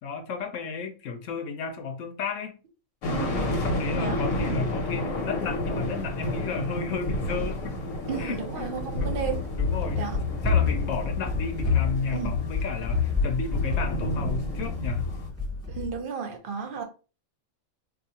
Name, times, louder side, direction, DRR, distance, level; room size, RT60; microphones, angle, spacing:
voice 1, 0.0-2.5 3.6-7.8 8.2-9.2 9.5-10.0 10.4-15.1, left 5 dB, 70° left, 1.0 m, -33 dB
sound 1, 3.0-15.3, left 1 dB, 85° left, 1.2 m, -31 dB
voice 2, 3.1-3.5 4.0-4.7 7.4-7.5 8.1-9.4 10.0-10.2 12.1-12.3 15.7-16.8, right 6 dB, 50° right, 0.7 m, -34 dB
Run, 8.9-15.9, left 5 dB, 15° left, 0.5 m, -28 dB
4.1 x 2.4 x 2.8 m
omnidirectional pair, 1.4 m